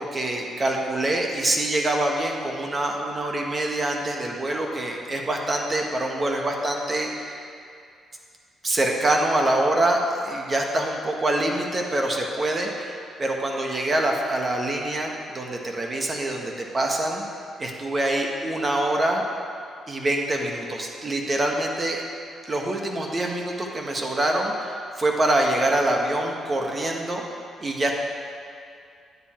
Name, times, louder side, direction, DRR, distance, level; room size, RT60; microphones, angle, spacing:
voice 1, 0.0-7.5 8.6-17.2 17.6-19.3 19.9-22.0 22.4-27.2 27.6-27.9, right 1 dB, 30° right, 1 dB, 1.4 m, -25 dB
9.6 x 9.3 x 4.5 m, 2.4 s
cardioid pair, 90°, 0 cm